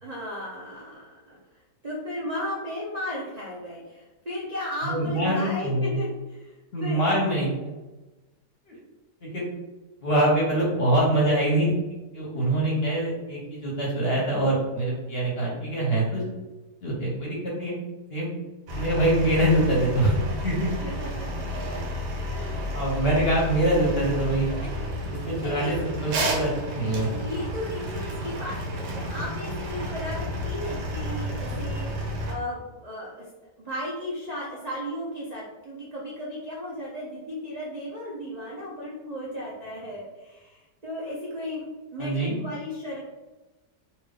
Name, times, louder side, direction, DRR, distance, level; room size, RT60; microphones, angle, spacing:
voice 1, 0.0-1.4 1.8-6.5 6.8-7.0 12.3-12.8 20.8-21.6 22.2-23.0 25.4-25.7 26.3-26.6 27.1-33.3 33.6-41.6 41.9-43.0, left 1 dB, 55° right, -5 dB, 0.4 m, -35 dB
voice 2, 4.8-5.9 6.7-7.7 9.2-9.5 10.0-11.7 12.1-16.3 16.8-17.7 18.1-18.3 18.7-20.1 20.4-20.7 22.7-24.5 25.1-27.1 42.0-42.4, right 1 dB, 45° left, -4 dB, 0.9 m, -24 dB
sound 1, 18.7-32.3, equal, 80° right, 1.4 m, -31 dB
3.5 x 2.5 x 3.4 m, 1.1 s
omnidirectional pair, 1.8 m